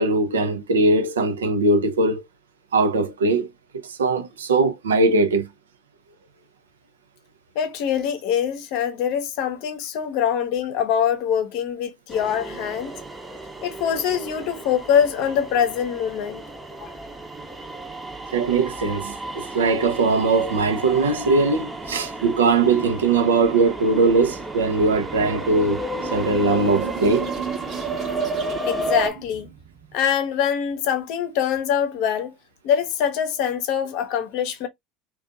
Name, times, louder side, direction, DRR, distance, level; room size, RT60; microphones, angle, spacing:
voice 1, 0.0-2.2 2.7-3.5 3.8-5.5 18.3-25.8 26.1-27.3, right 3 dB, 85° right, 0.5 m, -20 dB
voice 2, 7.5-12.9 13.6-16.4 16.8-16.9 28.6-29.5 29.9-32.3 32.6-34.7, left 8 dB, 65° left, 0.7 m, -24 dB
sound 1, 12.1-29.1, right 2 dB, 15° right, 0.7 m, -32 dB
sound 2, 24.5-29.9, right 8 dB, 50° right, 0.8 m, -37 dB
2.6 x 2.3 x 2.4 m
hypercardioid pair, 80°, 0 cm